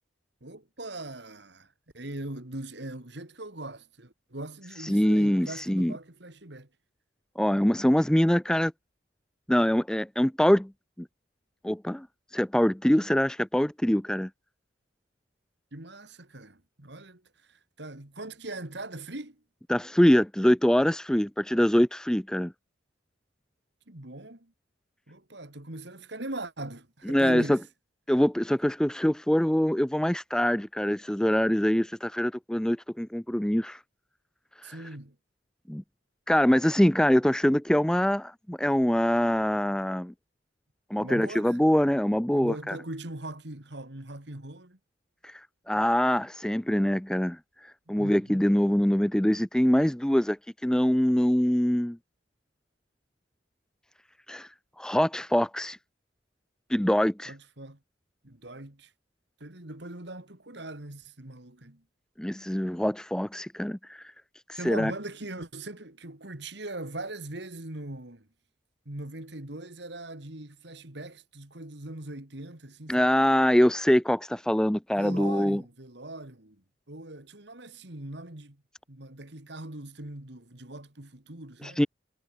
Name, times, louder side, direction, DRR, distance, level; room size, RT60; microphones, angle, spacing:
voice 1, 0.4-6.7 15.7-17.2 17.5-19.4 23.9-24.5 25.1-27.7 34.6-35.2 41.0-41.6 42.3-44.8 47.9-48.5 57.3-57.8 58.2-58.9 59.4-61.8 64.6-68.3 68.9-73.2 75.0-78.6 78.9-81.8, right 2 dB, 60° right, 2.6 m, -40 dB
voice 2, 4.8-5.9 7.4-8.7 9.5-10.7 11.6-12.1 12.3-14.3 19.7-22.5 27.1-27.6 28.1-33.8 34.6-34.8 35.7-35.8 36.3-40.1 40.9-42.8 45.2-45.4 45.7-47.4 47.9-50.4 50.6-52.0 54.3-54.5 54.8-55.8 56.7-57.3 62.2-64.0 64.5-64.9 72.9-75.6 81.6-81.9, equal, 5° left, 0.3 m, -24 dB
head